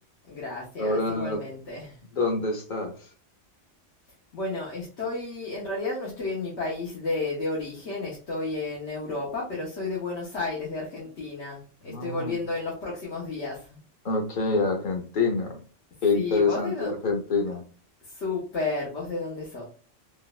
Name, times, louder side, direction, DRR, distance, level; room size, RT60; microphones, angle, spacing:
voice 1, 0.2-2.0 4.3-13.8 16.1-16.9 18.0-19.6, left 3 dB, 65° left, -5 dB, 1.2 m, -32 dB
voice 2, 0.8-1.4 2.1-2.9 11.9-12.4 14.0-15.6 16.0-17.6, left 3 dB, 45° left, 2 dB, 0.9 m, -26 dB
3.8 x 2.4 x 2.3 m, 0.40 s
omnidirectional pair, 1.3 m